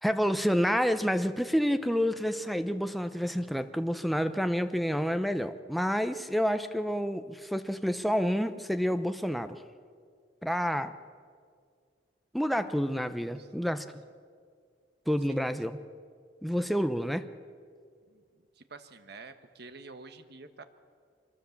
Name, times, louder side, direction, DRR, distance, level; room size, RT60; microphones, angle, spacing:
voice 1, 0.0-9.6 10.4-10.9 12.3-14.0 15.1-15.8 16.4-17.3, equal, ahead, 9 dB, 0.7 m, -29 dB
voice 2, 18.6-20.6, right 3 dB, 60° right, 9 dB, 1.4 m, -49 dB
24.0 x 21.5 x 7.2 m, 2.1 s
head